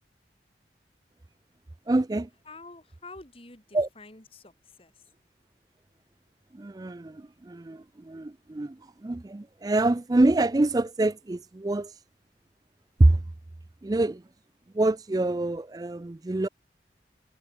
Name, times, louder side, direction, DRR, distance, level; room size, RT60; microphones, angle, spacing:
voice 1, 1.9-2.3 3.7-3.9 6.5-12.0 13.0-13.2 13.8-14.2 14.7-16.5, right 2 dB, 20° right, 0.4 m, -25 dB
voice 2, 2.5-5.0, left 3 dB, 30° left, 3.3 m, -48 dB
head